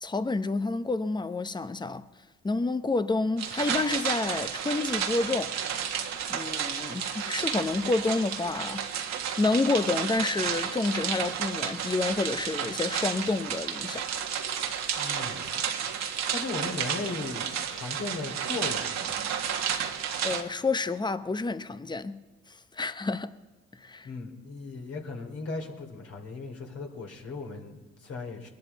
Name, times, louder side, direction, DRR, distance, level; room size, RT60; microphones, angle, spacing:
voice 1, 0.0-2.0 2.4-5.5 6.3-8.9 9.4-14.1 20.2-22.2 22.8-23.3 23.8-24.1, left 3 dB, 15° left, 0.8 m, -29 dB
sound 1, 3.4-20.4, right 8 dB, 65° right, 1.5 m, -32 dB
voice 2, 14.9-15.5 16.3-19.1 24.0-28.5, left 3 dB, 55° left, 3.0 m, -37 dB
21.5 x 11.5 x 4.1 m
supercardioid pair, 55°, 29 cm